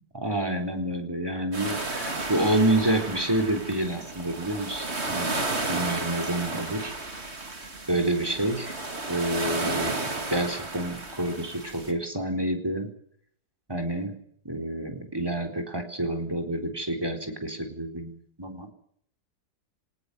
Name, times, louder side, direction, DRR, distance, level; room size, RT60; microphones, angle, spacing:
voice 1, 0.1-6.9 7.9-8.8 9.1-12.9 13.7-14.2 14.4-18.7, right 1 dB, 15° right, 4 dB, 4.0 m, -28 dB
sound 1, 1.5-11.9, right 2 dB, 40° right, 3.1 m, -33 dB
22.0 x 18.5 x 8.2 m, 0.65 s
omnidirectional pair, 1.8 m